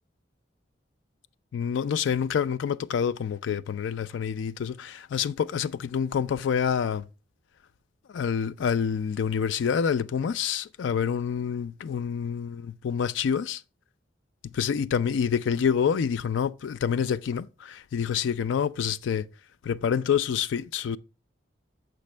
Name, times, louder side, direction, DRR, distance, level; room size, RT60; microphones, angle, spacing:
voice 1, 1.5-7.0 8.1-13.6 14.5-19.3 19.6-21.0, left 7 dB, 75° left, 0.3 m, -27 dB
6.5 x 5.2 x 3.2 m
head